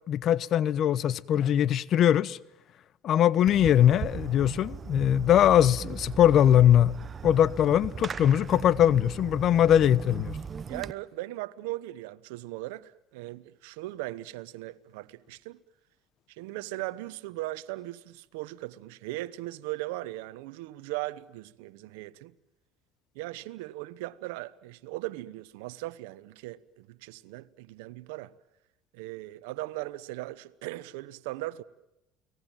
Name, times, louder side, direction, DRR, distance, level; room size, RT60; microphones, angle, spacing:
voice 1, 0.1-2.4 3.0-6.9 7.2-10.4, left 10 dB, 50° left, 0.9 m, -21 dB
Fireworks, 3.5-10.9, right 6 dB, 35° right, 0.9 m, -38 dB
voice 2, 10.7-15.6 16.3-22.3 23.1-28.3 28.9-31.6, right 18 dB, 85° right, 0.9 m, -38 dB
30.0 x 20.0 x 9.0 m
supercardioid pair, 100°, 0 cm